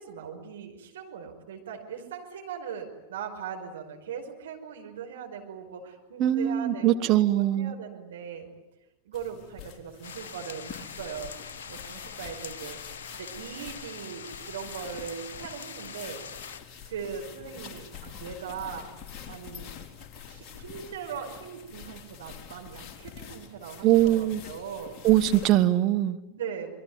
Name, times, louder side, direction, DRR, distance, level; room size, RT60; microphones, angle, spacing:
voice 1, 0.0-8.5 9.0-11.3 11.7-16.4 16.9-18.9 19.3-19.7 20.3-25.0 26.3-26.7, right 7 dB, 60° right, 5.3 m, -40 dB
voice 2, 6.2-7.7 23.8-24.4 25.0-26.2, right 13 dB, 35° right, 1.4 m, -22 dB
sound 1, 9.1-25.6, left 8 dB, 30° left, 3.9 m, -46 dB
sound 2, 10.0-16.6, left 6 dB, 60° left, 1.5 m, -43 dB
26.5 x 22.5 x 9.6 m
figure-of-eight pair, 90°, 0 cm